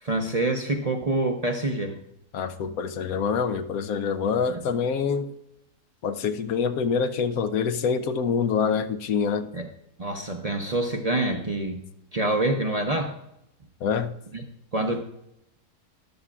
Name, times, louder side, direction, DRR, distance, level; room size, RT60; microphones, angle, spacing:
voice 1, 0.0-2.0 4.5-4.7 9.5-9.7 10.0-11.8 12.1-13.2 14.3-14.4 14.7-15.0, right 2 dB, 35° right, 2 dB, 0.7 m, -26 dB
voice 2, 2.3-5.3 6.0-9.5 13.8-14.1, left 6 dB, 70° left, 10 dB, 1.1 m, -26 dB
13.5 x 11.0 x 2.4 m, 0.83 s
omnidirectional pair, 1.6 m